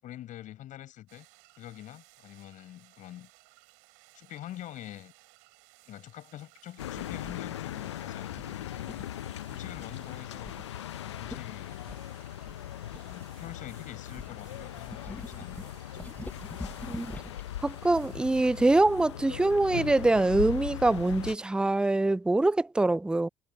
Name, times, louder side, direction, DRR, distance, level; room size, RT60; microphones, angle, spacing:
voice 1, 0.0-1.3 1.6-3.3 4.1-5.1 5.9-9.0 9.5-10.6 11.0-11.8 13.0-15.7, left 13 dB, 65° left, 7.4 m, -45 dB
sound 1, 1.1-18.8, right 36 dB, 75° right, 4.4 m, -60 dB
sound 2, 6.8-21.4, left 12 dB, 90° left, 0.6 m, -39 dB
sound 3, 6.9-7.4 8.3-9.2 9.7-10.0 10.4-10.7 11.0-11.1 11.2-11.4 11.9-13.7 14.2-17.5, left 2 dB, 10° left, 1.3 m, -44 dB
voice 2, 17.6-23.3, right 2 dB, 5° right, 0.4 m, -24 dB
hypercardioid pair, 50°, 14 cm